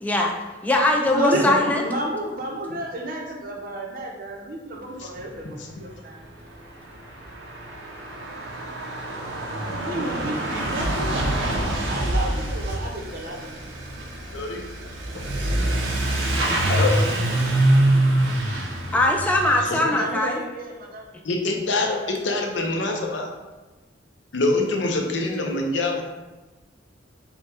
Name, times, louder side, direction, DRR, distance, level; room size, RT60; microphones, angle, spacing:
voice 1, 0.0-0.3 0.6-1.9 18.9-20.4, left 1 dB, 10° left, 0 dB, 0.4 m, -21 dB
voice 2, 1.1-6.2 9.8-13.5 19.8-21.2, right 1 dB, 45° right, 0 dB, 0.7 m, -32 dB
Truck / Accelerating revving vroom, 6.0-6.1 6.2-19.6, right 1 dB, 80° right, 0.8 m, -25 dB
voice 3, 16.7-17.1 19.7-19.8 21.2-23.3 24.3-26.0, left 2 dB, 70° left, 2 dB, 0.7 m, -25 dB
5.3 x 2.2 x 4.3 m, 1.2 s
head